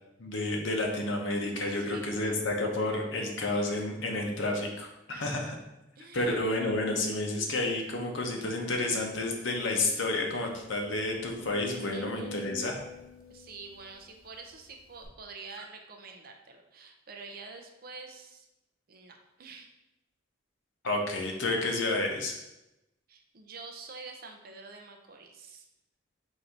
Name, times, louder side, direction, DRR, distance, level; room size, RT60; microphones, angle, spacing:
voice 1, 0.2-5.6 6.1-12.8 20.8-22.4, left 2 dB, 70° left, 2 dB, 0.8 m, -30 dB
voice 2, 1.7-2.4 5.1-5.5 6.0-6.3 11.9-12.4 13.3-18.5 18.9-19.7 23.1-25.7, right 4 dB, 45° right, 4 dB, 0.5 m, -47 dB
sound 1, 9.0-9.1 9.5-9.6 10.1-14.4 15.0-15.1, left 1 dB, 45° left, 1.1 m, -46 dB
4.0 x 2.7 x 4.5 m, 0.93 s
head